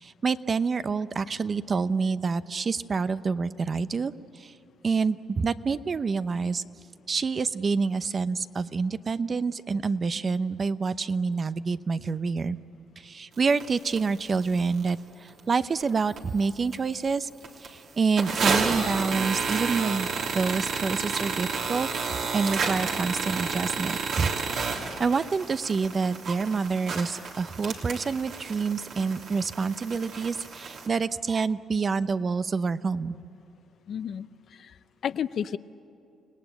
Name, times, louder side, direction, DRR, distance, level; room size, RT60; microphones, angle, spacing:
voice 1, 0.0-4.5 4.8-6.6 7.1-12.6 13.0-17.3 17.6-20.1 20.3-21.9 22.3-33.2, right 4 dB, 40° right, 13 dB, 0.7 m, -27 dB
sound 1, 13.6-13.7 14.0-14.1 14.5-14.9 15.4-15.5 15.8-16.4 16.7-16.8 17.1-17.2 17.4-17.7 18.2-30.9, right 4 dB, 70° right, 3.2 m, -31 dB
voice 2, 33.9-34.8 35.0-35.6, left 8 dB, 60° left, 14 dB, 0.6 m, -32 dB
29.0 x 18.0 x 9.0 m, 2.6 s
cardioid pair, 90°, 0 cm